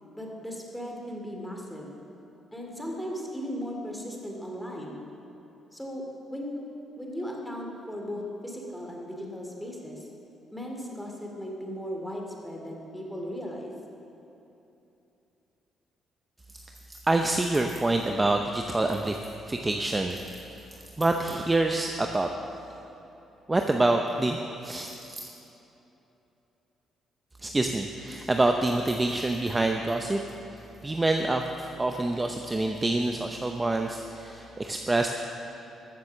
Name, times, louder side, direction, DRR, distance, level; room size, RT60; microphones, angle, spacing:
voice 1, 0.1-1.9 2.5-4.9 5.7-6.0 6.3-6.6 7.0-10.1 10.5-13.7, equal, 5° left, 0 dB, 2.4 m, -37 dB
voice 2, 16.9-19.2 19.5-22.3 23.5-25.3 27.4-30.2 30.5-35.1, right 2 dB, 20° right, 4 dB, 0.7 m, -27 dB
13.0 x 7.3 x 7.2 m, 2.9 s
cardioid pair, 90°, 0 cm